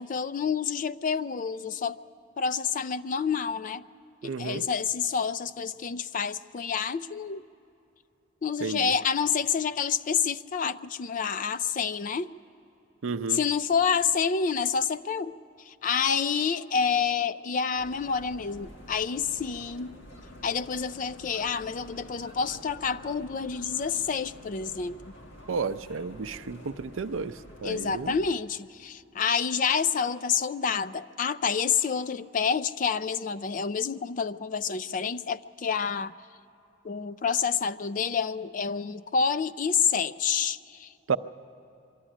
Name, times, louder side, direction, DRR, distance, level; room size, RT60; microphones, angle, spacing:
voice 1, 0.0-2.0 2.4-3.8 4.4-7.4 8.4-12.3 13.3-15.3 15.7-20.0 20.4-25.0 27.6-36.1 36.8-40.9, left 6 dB, 40° left, 0.4 m, -28 dB
voice 2, 4.2-4.6 8.6-8.9 13.0-13.4 25.5-27.3 27.6-28.1 41.1-41.2, right 5 dB, 85° right, 0.5 m, -31 dB
sound 1, 17.8-28.3, equal, 65° left, 1.8 m, -48 dB
23.5 x 12.5 x 9.9 m
head